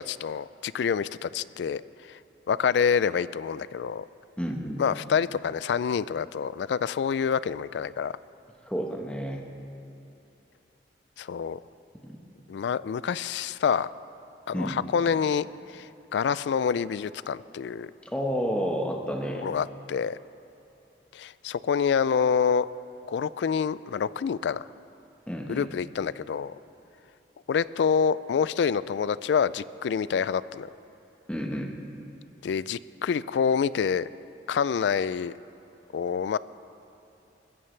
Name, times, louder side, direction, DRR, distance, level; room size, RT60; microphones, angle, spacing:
voice 1, 0.0-1.8 2.1-2.2 2.5-4.0 4.8-8.1 11.2-11.6 12.5-13.9 14.5-15.5 15.7-15.9 16.1-17.9 19.4-20.2 21.1-22.7 23.1-24.6 25.5-26.5 27.5-30.7 32.4-34.1 34.5-35.3 35.9-36.4, left 6 dB, 75° left, 18 dB, 0.3 m, -27 dB
voice 2, 4.4-4.8 8.7-9.4 12.0-12.2 14.5-14.8 18.1-19.5 25.3-25.7 31.3-31.8, equal, 5° left, 1 dB, 1.2 m, -30 dB
21.0 x 14.5 x 3.3 m, 2.9 s
head